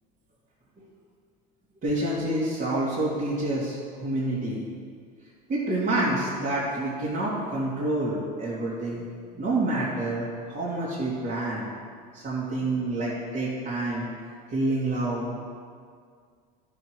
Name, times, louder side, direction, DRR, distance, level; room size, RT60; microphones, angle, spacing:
voice 1, 1.8-4.6 5.5-9.1 9.3-11.7 12.1-14.1 14.5-15.5, right 2 dB, 45° right, -10 dB, 2.8 m, -28 dB
12.0 x 6.6 x 4.7 m, 2.1 s
supercardioid pair, 105°, 21 cm